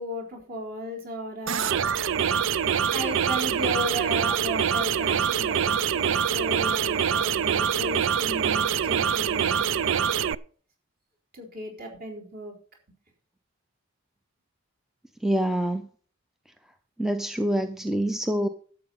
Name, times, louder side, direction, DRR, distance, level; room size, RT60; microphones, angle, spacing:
voice 1, 0.0-1.7 2.9-9.8 11.3-12.5, equal, 45° right, 0 dB, 4.0 m, -35 dB
sound 1, 1.5-10.3, right 8 dB, 60° right, 0.4 m, -25 dB
voice 2, 15.2-15.9 17.0-18.5, right 1 dB, ahead, 8 dB, 0.6 m, -26 dB
12.5 x 7.8 x 5.6 m, 0.43 s
head